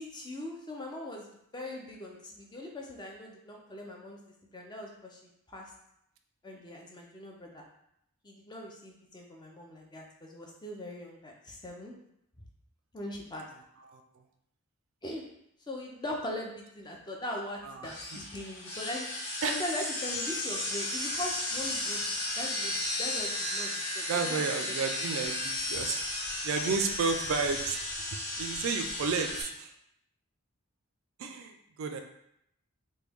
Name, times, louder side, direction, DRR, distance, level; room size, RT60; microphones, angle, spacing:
voice 1, 0.0-4.2 4.5-5.7 6.4-7.6 8.2-11.9 12.9-13.5 15.0-15.2 15.7-19.1 19.5-22.0 22.4-24.4, left 1 dB, 20° left, 0 dB, 0.4 m, -40 dB
voice 2, 17.6-18.2 19.4-19.6 24.1-27.8 28.1-29.7 31.2-32.0, right 5 dB, 65° right, 6 dB, 0.3 m, -32 dB
sound 1, 17.8-29.4, left 1 dB, 90° left, 0.9 m, -34 dB
3.1 x 2.2 x 3.4 m, 0.76 s
head